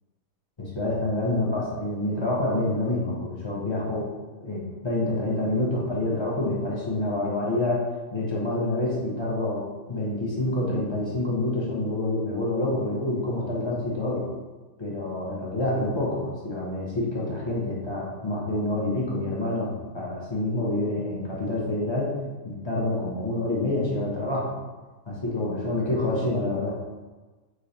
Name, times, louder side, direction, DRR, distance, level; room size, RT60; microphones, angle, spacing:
voice 1, 0.6-4.1 4.4-7.8 8.1-14.3 14.8-22.1 22.4-24.5 25.1-26.8, left 2 dB, 30° left, -5 dB, 0.5 m, -27 dB
3.1 x 2.6 x 4.0 m, 1.3 s
omnidirectional pair, 1.5 m